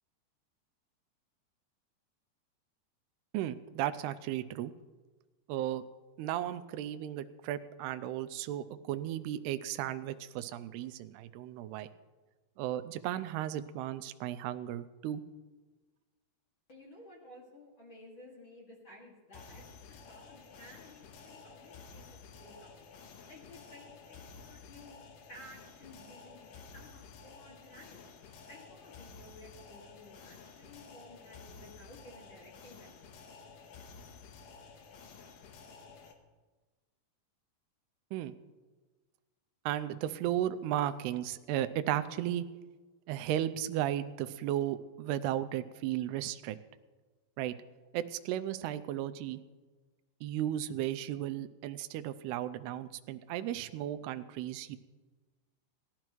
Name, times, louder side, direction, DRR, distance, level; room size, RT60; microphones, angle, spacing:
voice 1, 3.3-4.7 5.5-5.8 6.2-11.9 12.6-15.2 38.1-38.3 39.7-42.5 43.1-46.6 47.4-47.5 47.9-49.4 50.2-54.8, right 12 dB, 80° right, 10 dB, 2.5 m, -35 dB
voice 2, 16.7-22.9 23.3-28.0 28.5-33.0, left 1 dB, 40° left, -3 dB, 2.1 m, -55 dB
sound 1, 19.3-36.1, left 5 dB, 70° left, 2.7 m, -52 dB
19.0 x 12.0 x 3.1 m, 1.3 s
omnidirectional pair, 4.8 m